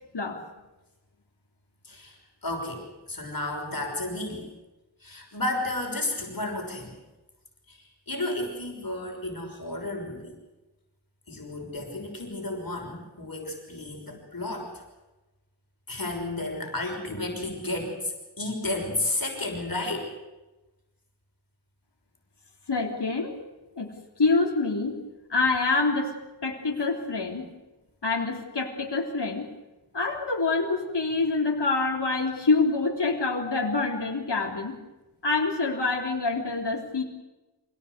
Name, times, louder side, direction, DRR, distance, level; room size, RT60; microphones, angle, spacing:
voice 1, 1.8-4.5 5.0-7.0 7.7-10.4 11.3-14.8 15.9-20.1, left 2 dB, 55° left, 1 dB, 6.2 m, -32 dB
voice 2, 22.7-23.4 23.8-23.9 24.2-25.0 25.3-26.1 26.4-27.5 28.0-29.5 29.9-34.8 35.2-37.0, left 3 dB, 75° left, 0 dB, 3.6 m, -26 dB
26.5 x 18.0 x 8.2 m, 1.1 s
wide cardioid pair, 60°, 41 cm